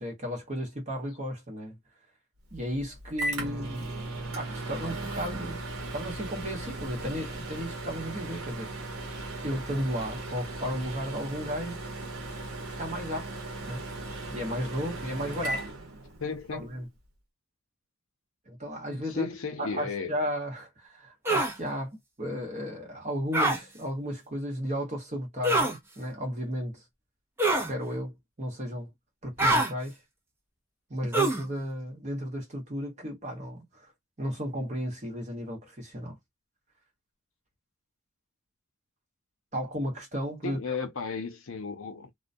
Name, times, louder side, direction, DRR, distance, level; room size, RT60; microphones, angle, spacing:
voice 1, 0.0-1.8 2.5-3.9 4.3-5.6 5.9-8.9 9.4-11.8 12.6-13.3 13.6-13.8 14.3-15.6 16.5-16.9 18.5-19.3 19.6-26.8 27.7-28.9 29.2-30.0 30.9-33.9 34.2-36.2 39.5-40.7, equal, 35° right, 1.0 m, -34 dB
Microwave oven, 2.5-16.5, right 2 dB, 80° right, 0.8 m, -37 dB
voice 2, 16.2-16.7 18.9-20.1 40.4-42.1, left 4 dB, 65° left, 0.6 m, -34 dB
sound 1, 21.3-21.5 23.3-23.6 25.4-25.8 27.4-27.7 29.4-29.7 31.1-31.5, right 2 dB, 10° right, 0.5 m, -24 dB
2.2 x 2.2 x 2.5 m
head